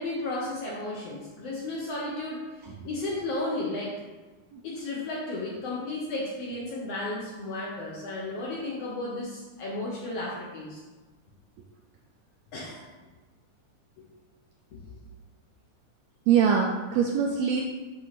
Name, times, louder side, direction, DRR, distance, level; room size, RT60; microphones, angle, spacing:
voice 1, 0.0-2.4 2.8-3.9 4.6-10.8 12.5-12.9, left 2 dB, 65° left, -4 dB, 1.7 m, -33 dB
voice 2, 16.3-17.6, right 7 dB, 85° right, 1 dB, 1.5 m, -24 dB
7.8 x 2.7 x 5.8 m, 1.3 s
omnidirectional pair, 3.6 m